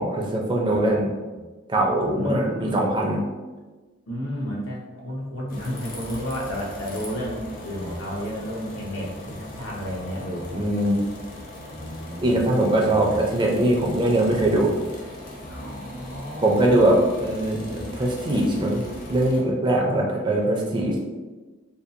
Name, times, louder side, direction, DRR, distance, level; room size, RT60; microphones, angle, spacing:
voice 1, 0.0-1.1 1.7-3.2 10.5-11.0 12.2-14.7 16.4-18.8 19.1-21.0, right 1 dB, 25° right, 0 dB, 0.4 m, -21 dB
voice 2, 0.7-1.4 2.2-2.8 4.1-10.7 11.7-12.5 12.8-13.3 15.5-17.0, equal, 85° left, -3 dB, 0.7 m, -32 dB
sound 1, 5.5-19.4, left 1 dB, 50° left, 0.6 m, -39 dB
2.7 x 2.3 x 2.4 m, 1.3 s
head